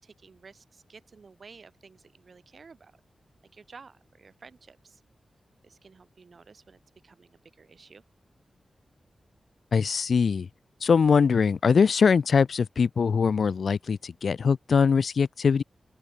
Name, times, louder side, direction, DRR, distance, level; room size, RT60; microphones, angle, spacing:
voice 1, 0.0-2.9 3.5-5.0 5.6-8.0, right 5 dB, 50° right, 5.8 m, -52 dB
voice 2, 9.7-10.5 10.8-15.6, left 5 dB, 65° left, 0.4 m, -22 dB
open air
wide cardioid pair, 160°, 0 cm